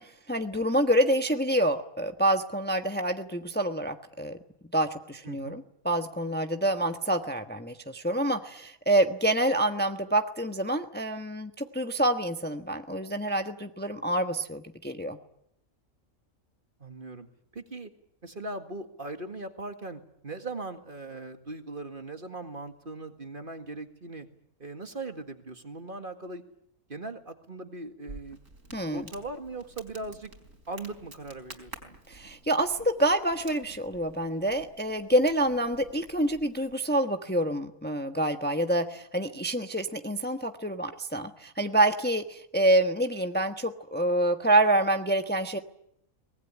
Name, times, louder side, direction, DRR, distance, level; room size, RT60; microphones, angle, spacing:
voice 1, 0.0-4.4 4.7-15.2 28.7-29.0 32.1-45.6, right 1 dB, 10° left, 6 dB, 1.2 m, -27 dB
voice 2, 5.2-5.6 16.8-17.3 17.5-17.9 18.2-24.3 24.6-26.4 26.9-28.4 28.9-30.3 30.7-31.9, right 2 dB, 40° right, 7 dB, 2.1 m, -39 dB
Crackle, 28.1-36.7, right 2 dB, 60° right, 4.6 m, -50 dB
23.5 x 20.5 x 9.9 m, 0.75 s
omnidirectional pair, 1.5 m